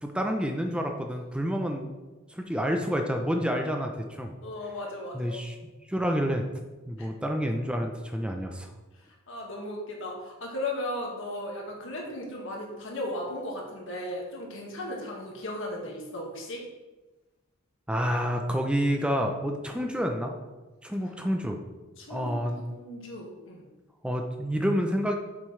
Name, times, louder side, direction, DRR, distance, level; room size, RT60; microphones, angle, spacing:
voice 1, 0.0-1.9 2.3-4.3 5.1-6.5 6.9-8.7 17.9-20.3 20.8-21.6 22.1-22.6 24.0-25.2, equal, 5° right, 3 dB, 0.6 m, -29 dB
voice 2, 4.4-5.4 7.0-7.1 9.3-16.6 22.0-23.6, left 1 dB, 65° left, -1 dB, 1.9 m, -36 dB
8.3 x 7.4 x 3.3 m, 1.2 s
head